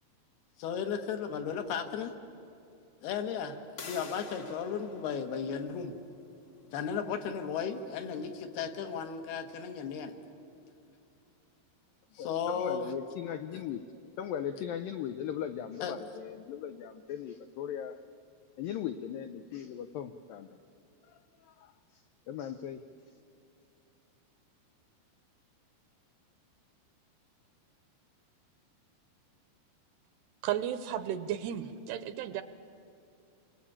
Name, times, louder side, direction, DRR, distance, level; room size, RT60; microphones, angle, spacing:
voice 1, 0.6-2.1 3.0-5.9 6.7-10.1 12.2-12.9 15.8-16.0, left 7 dB, 70° left, 7 dB, 3.2 m, -35 dB
sound 1, 3.8-9.4, left 4 dB, 50° left, 1.7 m, -51 dB
voice 2, 12.5-13.8 14.2-18.0 18.6-20.5 21.6-21.7 22.3-22.8, left 9 dB, 90° left, 10 dB, 2.0 m, -38 dB
voice 3, 30.4-32.4, right 10 dB, 80° right, 11 dB, 2.6 m, -34 dB
28.5 x 22.5 x 8.7 m, 2.6 s
omnidirectional pair, 5.0 m